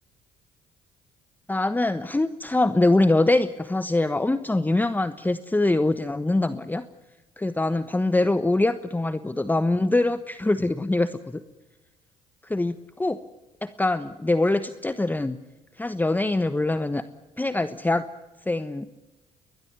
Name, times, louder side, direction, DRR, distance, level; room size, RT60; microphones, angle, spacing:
voice 1, 1.5-6.8 7.4-11.4 12.4-13.2 13.6-15.4 15.8-17.0 17.4-18.1 18.5-18.9, left 2 dB, 10° left, 12 dB, 1.1 m, -23 dB
21.5 x 20.5 x 9.4 m, 1.1 s
supercardioid pair, 60°, 15 cm